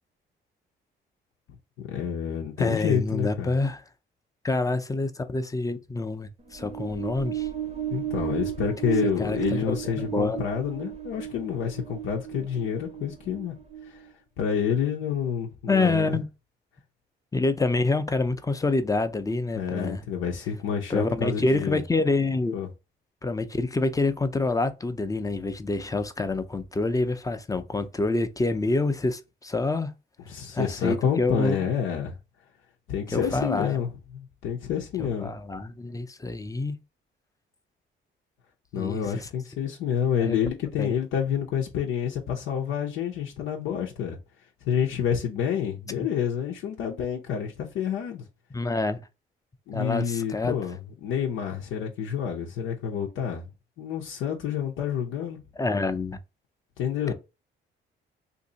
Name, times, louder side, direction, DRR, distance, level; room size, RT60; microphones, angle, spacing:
voice 1, 1.9-3.5 7.9-13.5 13.9-14.0 14.4-16.2 19.5-21.8 22.5-22.7 30.3-32.1 32.9-35.4 38.7-44.2 44.6-48.3 49.7-53.5 53.8-55.4 56.8-57.1, left 8 dB, 85° left, 0.7 m, -28 dB
voice 2, 2.6-3.8 4.4-7.5 9.2-10.4 15.7-16.3 17.3-20.0 20.9-22.6 23.2-29.9 30.5-31.6 33.1-33.7 35.0-36.8 38.8-39.3 40.2-40.4 40.8-41.0 48.5-49.0 49.7-50.6 55.6-56.2, left 3 dB, 15° left, 0.5 m, -27 dB
sound 1, 6.4-14.1, right 11 dB, 30° right, 0.6 m, -34 dB
2.7 x 2.6 x 3.9 m
cardioid pair, 90°, 20 cm